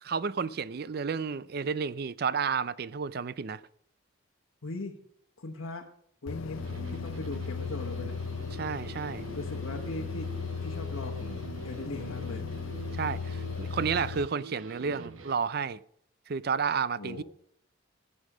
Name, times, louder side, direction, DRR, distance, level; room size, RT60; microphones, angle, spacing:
voice 1, 0.0-3.6 8.5-9.2 12.9-15.8 16.3-17.2, right 6 dB, 50° right, 0.4 m, -31 dB
voice 2, 4.6-5.0 5.4-5.9 6.2-6.6 6.9-8.1 9.3-10.3 10.6-12.4 17.0-17.2, left 2 dB, 85° left, 1.1 m, -39 dB
sound 1, 6.3-14.3, left 5 dB, 65° left, 0.4 m, -37 dB
sound 2, 6.6-15.3, right 3 dB, 80° right, 1.0 m, -45 dB
11.0 x 8.5 x 6.1 m
head